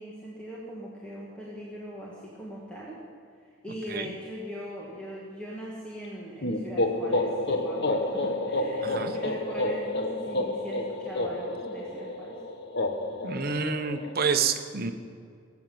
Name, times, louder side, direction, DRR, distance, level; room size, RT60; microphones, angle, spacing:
voice 1, 0.0-3.0 3.6-12.4, equal, 5° left, -5 dB, 1.9 m, -40 dB
sound 1, 6.4-14.1, left 1 dB, 55° left, 1.2 m, -30 dB
voice 2, 8.8-9.1 13.2-14.9, right 5 dB, 50° right, 7 dB, 1.1 m, -28 dB
18.5 x 8.4 x 7.7 m, 2.2 s
head